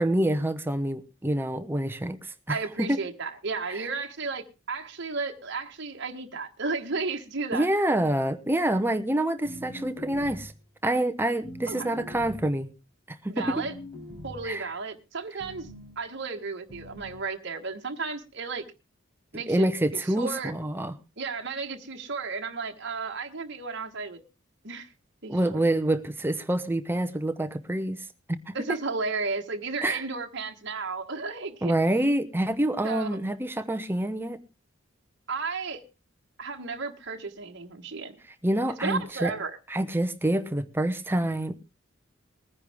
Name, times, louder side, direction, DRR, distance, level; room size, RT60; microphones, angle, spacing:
voice 1, 0.0-3.0 3.7-3.9 7.5-10.5 10.8-12.7 13.1-13.5 14.4-14.7 19.5-20.9 25.3-28.5 29.8-30.0 31.6-34.4 38.4-39.3 39.7-41.6, right 1 dB, 10° right, 0.7 m, -27 dB
voice 2, 2.5-7.7 11.7-12.0 13.3-13.7 14.2-15.7 16.0-18.7 19.3-19.7 19.9-20.5 21.2-24.2 24.6-24.9 25.2-25.6 28.5-31.7 32.8-33.2 35.3-35.8 36.4-38.1 38.8-39.6, right 4 dB, 55° right, 1.4 m, -33 dB
sound 1, 9.4-10.6 11.4-12.5 13.4-14.5 15.4-16.0 16.7-17.3, left 1 dB, 20° left, 5.4 m, -42 dB
20.5 x 9.9 x 3.5 m
head